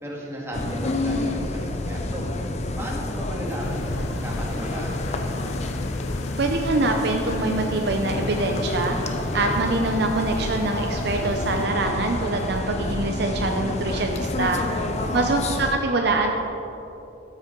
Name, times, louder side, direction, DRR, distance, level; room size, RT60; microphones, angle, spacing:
voice 1, 0.0-2.3 2.8-5.2 15.0-15.3, equal, 15° right, -4 dB, 1.7 m, -34 dB
sound 1, 0.5-15.8, left 2 dB, 35° left, 0.6 m, -29 dB
sound 2, 3.6-11.7, left 3 dB, 90° left, 0.5 m, -36 dB
voice 2, 6.4-9.0 9.3-14.6 15.1-16.3, right 2 dB, 55° right, 3 dB, 0.6 m, -24 dB
14.0 x 8.2 x 3.8 m, 3.0 s
head